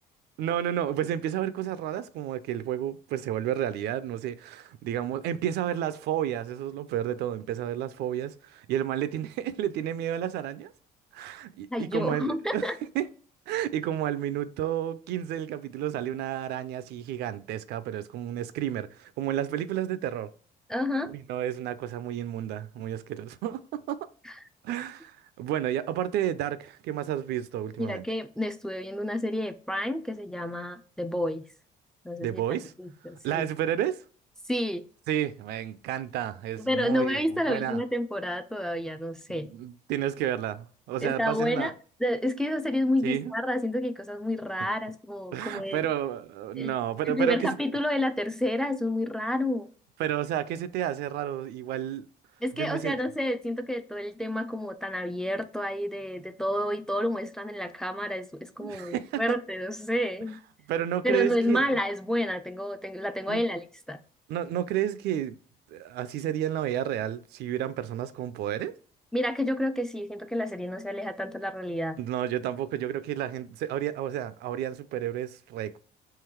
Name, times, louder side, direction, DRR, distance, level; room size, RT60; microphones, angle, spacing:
voice 1, 0.4-10.7 11.1-12.7 12.9-13.1 13.5-20.3 21.1-24.1 24.6-28.0 32.2-32.7 33.2-34.0 35.1-37.2 37.5-37.8 39.3-41.7 43.0-43.3 45.3-47.5 50.0-52.0 52.5-53.0 58.6-59.4 60.7-61.7 63.3-63.4 64.3-65.4 65.7-68.7 72.0-75.8, right 11 dB, 75° right, 0.4 m, -31 dB
voice 2, 11.7-12.7 20.7-21.1 24.3-24.4 27.8-31.5 32.0-32.4 32.8-33.5 34.5-34.8 36.6-39.5 41.0-41.7 42.0-45.9 46.6-46.8 47.1-49.7 52.4-60.4 61.0-64.0 69.1-72.0, left 1 dB, 5° left, 0.4 m, -30 dB
3.8 x 3.0 x 4.3 m
cardioid pair, 110°, 17 cm